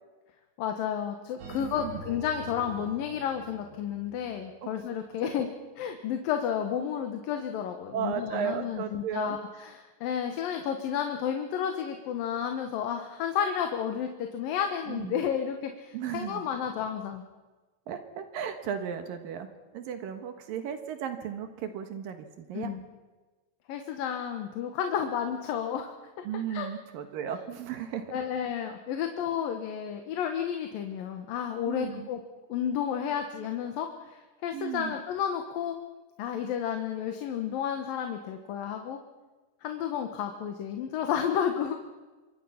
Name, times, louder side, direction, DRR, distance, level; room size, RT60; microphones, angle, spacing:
voice 1, 0.6-5.5 5.8-17.2 22.5-22.8 23.7-25.9 26.5-26.7 28.1-32.2 32.5-35.8 36.2-39.0 39.6-41.8, left 8 dB, 80° left, 5 dB, 3.0 m, -31 dB
sound 1, 1.4-4.4, right 2 dB, 60° right, 3.5 m, -45 dB
voice 2, 1.6-1.9 4.6-4.7 5.2-5.5 7.9-9.4 14.9-15.2 15.9-16.4 17.9-19.5 19.7-22.7 26.2-28.1 31.7-32.1 34.5-34.9, right 8 dB, 80° right, 7 dB, 3.2 m, -35 dB
27.0 x 24.0 x 5.8 m, 1.3 s
omnidirectional pair, 4.0 m